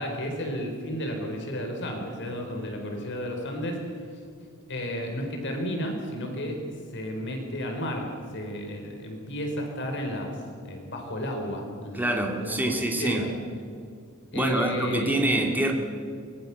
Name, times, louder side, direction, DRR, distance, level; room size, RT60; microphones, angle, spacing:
voice 1, 0.0-3.8 4.7-6.6 6.9-13.3 14.3-15.2, equal, 55° left, 3 dB, 4.4 m, -33 dB
voice 2, 11.9-13.3 14.3-15.7, right 1 dB, 10° right, 1 dB, 2.4 m, -26 dB
24.0 x 21.5 x 7.1 m, 2.3 s
head